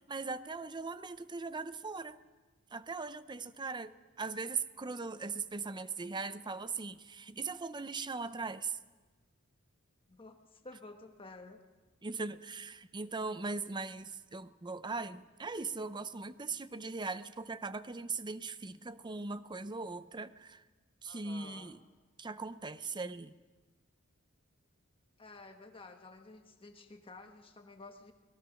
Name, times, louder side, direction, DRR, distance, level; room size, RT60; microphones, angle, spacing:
voice 1, 0.1-2.2 2.7-8.8 12.0-20.6 21.0-21.8 22.2-23.3, right 4 dB, 20° right, 0.6 m, -40 dB
voice 2, 10.1-11.6 21.0-21.7 25.2-28.1, left 3 dB, 25° left, 1.3 m, -52 dB
26.5 x 19.0 x 6.4 m
head